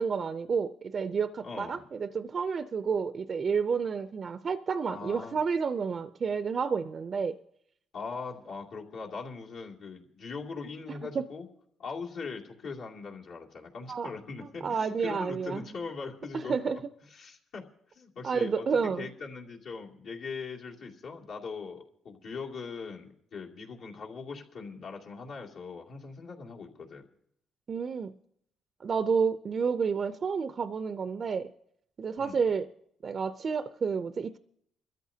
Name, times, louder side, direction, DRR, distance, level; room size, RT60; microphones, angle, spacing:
voice 1, 0.0-7.4 11.1-11.3 13.9-14.1 14.6-15.6 16.5-16.8 18.2-19.1 27.7-28.1 28.8-31.5 32.0-32.7 33.0-34.4, right 5 dB, 45° right, 11 dB, 0.4 m, -30 dB
voice 2, 1.4-1.9 4.9-5.4 7.9-11.5 11.8-16.5 17.1-27.0 32.2-32.4, left 4 dB, 75° left, -3 dB, 2.5 m, -41 dB
24.0 x 13.5 x 2.8 m, 0.71 s
cardioid pair, 90°, 0 cm